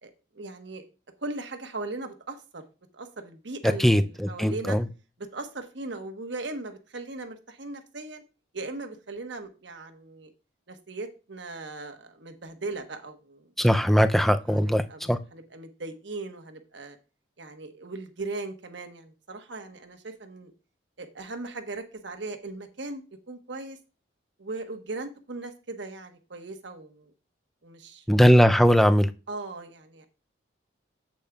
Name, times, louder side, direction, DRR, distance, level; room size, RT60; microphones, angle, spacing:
voice 1, 0.0-0.8 1.2-2.6 2.9-4.8 5.2-8.2 8.5-10.3 10.7-13.5 14.5-17.0 17.4-20.5 21.0-23.8 24.4-27.1 27.6-28.2 29.3-30.1, right 2 dB, 70° right, 1.2 m, -38 dB
voice 2, 3.8-4.8 13.6-14.8 15.1-15.2 28.1-29.1, equal, ahead, 0.3 m, -19 dB
8.5 x 8.3 x 2.3 m
head